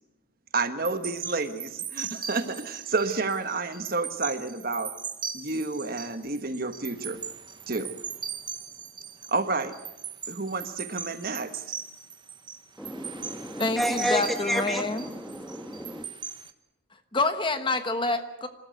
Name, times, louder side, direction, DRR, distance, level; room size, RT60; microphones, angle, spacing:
voice 1, 0.5-4.9 5.3-7.2 7.7-7.9 9.3-9.8 10.3-11.6, right 3 dB, 45° right, 9 dB, 1.3 m, -30 dB
sound 1, 0.8-16.5, right 6 dB, 25° right, 1.1 m, -39 dB
voice 2, 12.8-16.1, equal, ahead, 7 dB, 1.4 m, -31 dB
voice 3, 13.6-15.1 16.9-18.5, left 3 dB, 25° left, 9 dB, 1.2 m, -27 dB
27.5 x 13.5 x 9.3 m, 0.94 s
head